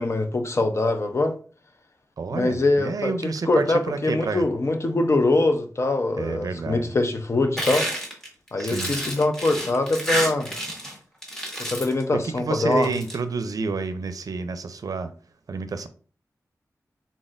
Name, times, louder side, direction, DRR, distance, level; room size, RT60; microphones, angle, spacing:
voice 1, 0.0-1.3 2.3-7.9 8.5-10.5 11.7-12.9, left 2 dB, 50° left, 0.6 m, -23 dB
voice 2, 2.2-4.5 6.2-6.9 8.6-9.0 12.1-15.1 15.5-15.9, right 4 dB, 75° right, 0.4 m, -29 dB
sound 1, 7.6-10.9 11.2-12.0 12.7-13.1, equal, 10° left, 1.3 m, -29 dB
4.1 x 3.6 x 2.5 m
wide cardioid pair, 90°, 6 cm